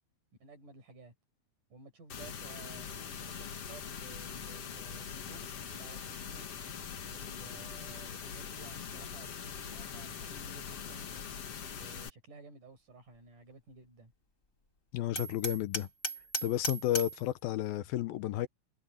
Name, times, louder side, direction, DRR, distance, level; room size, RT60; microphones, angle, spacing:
voice 1, 0.4-1.1 1.7-5.5 5.7-6.5 7.0-11.1 11.7-14.1, right 3 dB, 60° right, 8.1 m, -54 dB
sound 1, 2.1-12.1, left 7 dB, 50° left, 2.4 m, -42 dB
voice 2, 14.9-15.9 16.4-18.5, left 14 dB, 80° left, 2.7 m, -32 dB
Hammer, 15.2-17.2, equal, 20° left, 3.3 m, -36 dB
omnidirectional pair, 4.3 m